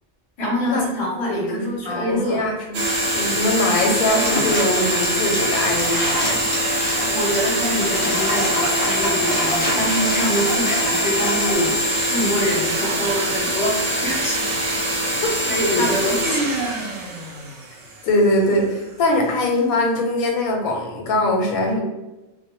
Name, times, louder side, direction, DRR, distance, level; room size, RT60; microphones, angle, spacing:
voice 1, 0.4-2.5 7.0-14.5 15.2-16.4, equal, 25° left, -5 dB, 0.7 m, -25 dB
voice 2, 1.2-2.8 3.1-6.4 15.2-15.3 15.7-16.0 18.0-21.8, left 1 dB, 85° left, 1 dB, 1.1 m, -22 dB
sound 1, 2.7-18.0, equal, 70° right, 0.8 m, -23 dB
sound 2, 4.1-11.5, equal, 60° left, 0.4 m, -28 dB
2.3 x 2.1 x 2.9 m, 1.0 s
omnidirectional pair, 1.5 m